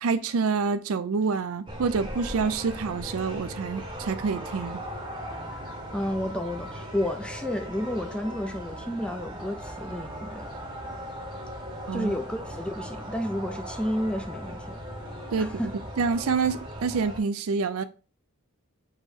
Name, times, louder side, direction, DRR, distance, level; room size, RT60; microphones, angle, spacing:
voice 1, 0.0-4.8 11.9-12.1 15.3-15.6 16.0-17.8, right 5 dB, 75° right, 0.4 m, -27 dB
sound 1, 1.7-17.2, equal, 20° right, 0.9 m, -38 dB
voice 2, 5.5-10.5 11.9-14.8 15.4-15.7, left 1 dB, 5° left, 0.4 m, -31 dB
4.4 x 3.0 x 3.6 m
head